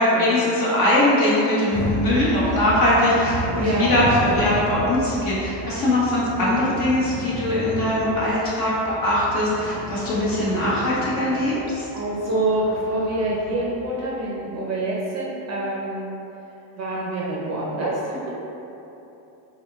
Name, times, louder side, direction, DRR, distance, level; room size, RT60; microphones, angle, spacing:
voice 1, 0.0-11.9, left 1 dB, 45° left, -7 dB, 1.2 m, -21 dB
Motorcycle, 1.7-13.8, equal, 10° left, 1.1 m, -32 dB
voice 2, 3.6-4.0 11.9-16.1 16.8-18.3, right 2 dB, 35° right, -4 dB, 0.5 m, -26 dB
4.3 x 2.3 x 3.4 m, 2.9 s
cardioid pair, 125°, 49 cm